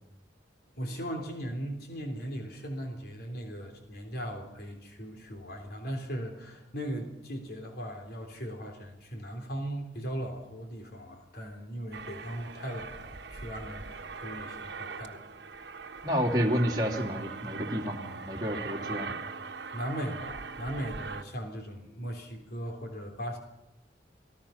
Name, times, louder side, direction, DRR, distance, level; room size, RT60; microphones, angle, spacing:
voice 1, 0.8-15.2 19.7-23.4, equal, 55° left, 3 dB, 3.6 m, -38 dB
Aircraft, 11.9-21.2, right 4 dB, 65° right, 1.4 m, -41 dB
voice 2, 16.0-19.2, equal, 20° right, -2 dB, 2.9 m, -30 dB
27.5 x 18.5 x 5.8 m, 0.88 s
head